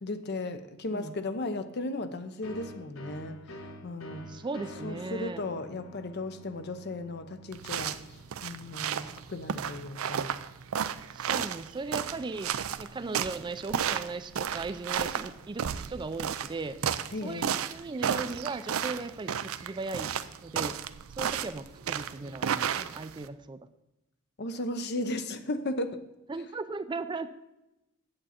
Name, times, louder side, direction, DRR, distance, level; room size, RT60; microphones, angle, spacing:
voice 1, 0.0-4.3 4.8-8.0 8.4-10.4 17.1-17.6 24.4-26.0, left 2 dB, 55° left, 0.7 m, -35 dB
sound 1, 2.4-9.9, equal, 75° left, 1.1 m, -48 dB
voice 2, 4.3-5.4 11.1-12.5 12.8-16.8 17.2-20.1 20.4-20.8 21.2-23.6 26.3-27.3, right 3 dB, 20° right, 0.4 m, -37 dB
sound 2, 7.5-23.3, right 8 dB, 85° right, 0.5 m, -33 dB
8.7 x 8.0 x 4.2 m
head